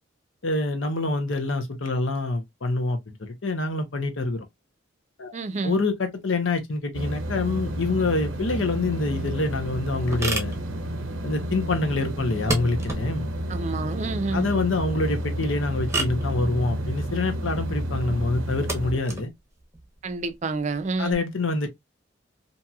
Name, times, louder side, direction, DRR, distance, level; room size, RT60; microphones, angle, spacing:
voice 1, 0.4-4.4 5.2-5.4 5.6-10.6 11.2-13.3 14.3-19.3 21.0-21.7, left 2 dB, 75° left, 0.8 m, -26 dB
voice 2, 5.3-5.8 13.5-14.5 20.0-21.2, right 3 dB, 35° right, 0.4 m, -28 dB
sound 1, 6.9-18.9, right 1 dB, 85° right, 0.6 m, -30 dB
sound 2, 10.0-21.1, right 2 dB, 15° right, 0.8 m, -36 dB
2.8 x 2.6 x 2.3 m
head